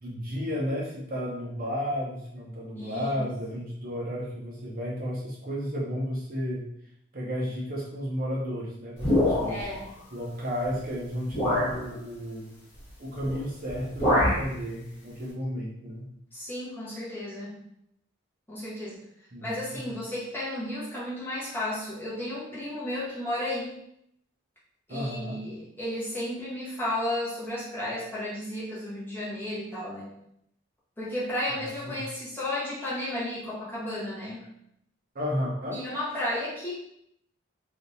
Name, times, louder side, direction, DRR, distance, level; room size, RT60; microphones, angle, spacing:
voice 1, 0.0-6.6 7.1-9.7 10.1-12.5 13.0-16.1 19.3-19.9 24.9-25.4 31.5-32.0 35.1-35.8, equal, 50° right, -4 dB, 0.7 m, -33 dB
voice 2, 2.7-3.3 9.5-9.9 16.3-17.6 18.5-19.1 19.4-23.7 24.9-30.1 31.0-34.5 35.7-36.7, left 1 dB, 10° left, -8 dB, 1.0 m, -33 dB
sound 1, 9.0-9.8 10.7-10.8 11.3-11.8 13.2-13.4 13.7-14.5, left 1 dB, 30° left, 1.4 m, -25 dB
3.4 x 2.8 x 2.6 m, 0.74 s
head